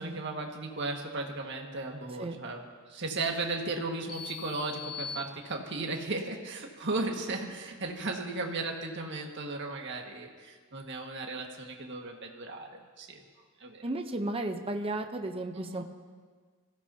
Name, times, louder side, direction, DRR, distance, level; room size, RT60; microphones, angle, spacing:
voice 1, 0.0-2.6 2.9-13.2 13.6-13.9 15.5-15.8, right 3 dB, 55° right, 1 dB, 1.8 m, -36 dB
sound 1, 4.1-6.0, left 6 dB, 25° left, 4.1 m, -42 dB
voice 2, 13.8-15.8, right 2 dB, 25° right, 5 dB, 0.8 m, -34 dB
24.0 x 15.5 x 2.8 m, 1.5 s
head